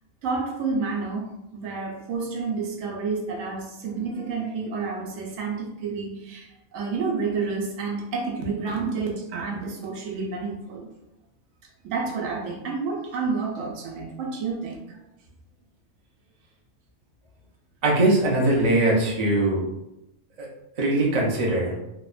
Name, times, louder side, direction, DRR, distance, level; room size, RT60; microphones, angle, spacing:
voice 1, 0.2-10.9 11.8-15.0, right 4 dB, 75° right, 0 dB, 1.0 m, -30 dB
voice 2, 17.8-19.6 20.4-20.5 20.8-21.8, right 1 dB, 45° right, -3 dB, 0.5 m, -21 dB
2.8 x 2.1 x 2.3 m, 0.87 s
omnidirectional pair, 1.4 m